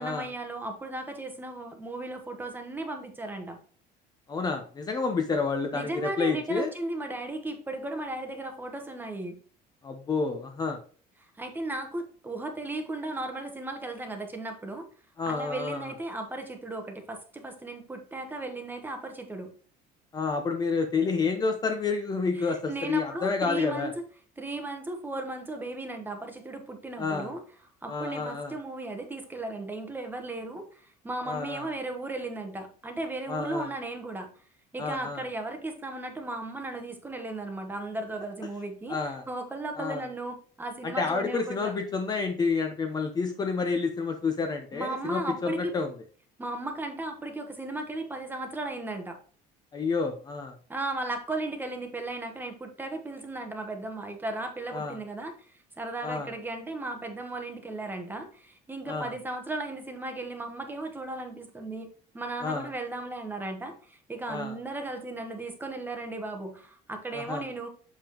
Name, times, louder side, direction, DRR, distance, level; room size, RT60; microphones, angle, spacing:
voice 1, 0.0-3.6 5.7-9.4 11.4-14.9 15.2-19.5 22.4-24.1 24.4-27.4 27.8-34.3 34.7-39.0 39.3-41.7 44.7-45.7 46.4-49.2 50.7-55.4 55.8-61.9 62.1-67.7, right 2 dB, 10° right, 5 dB, 1.0 m, -36 dB
voice 2, 4.3-6.7 9.8-10.8 15.2-15.9 20.1-23.9 27.0-27.3 27.9-28.5 31.3-31.7 33.3-33.7 34.8-35.2 38.9-39.2 39.8-40.0 40.8-45.9 49.7-50.5 54.7-55.0 56.0-56.3 58.9-59.1 62.4-62.7 64.3-64.6 67.1-67.5, left 4 dB, 25° left, 5 dB, 0.8 m, -29 dB
7.0 x 5.5 x 3.0 m, 0.43 s
cardioid pair, 160°, 17 cm